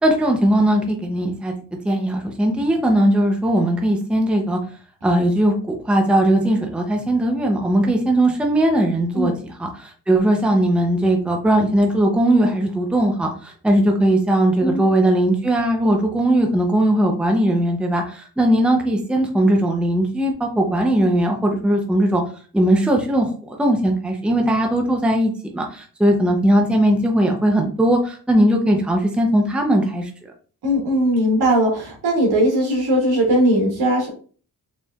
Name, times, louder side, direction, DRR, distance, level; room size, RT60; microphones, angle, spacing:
voice 1, 0.0-1.5 1.8-4.6 5.0-22.2 22.5-30.1, right 1 dB, 5° right, 2 dB, 0.6 m, -19 dB
voice 2, 30.6-34.1, right 1 dB, 80° right, -2 dB, 2.0 m, -19 dB
4.4 x 3.2 x 2.3 m, 0.41 s
cardioid pair, 110°, 39 cm